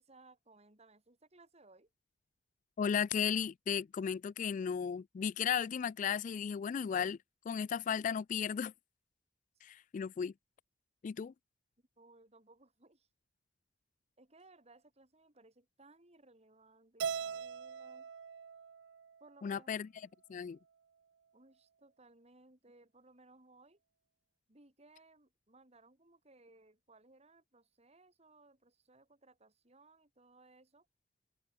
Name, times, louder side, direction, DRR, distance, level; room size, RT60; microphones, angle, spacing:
voice 1, 0.0-1.9 12.0-13.1 14.2-18.1 19.2-19.7 21.3-23.8 24.5-30.9, right 2 dB, 35° right, 4.2 m, -62 dB
voice 2, 2.8-7.2 7.5-8.7 9.6-10.3 11.0-11.3 19.4-19.9 20.3-20.6, left 7 dB, 45° left, 0.3 m, -35 dB
Keyboard (musical), 17.0-19.3, right 6 dB, 85° right, 0.5 m, -41 dB
head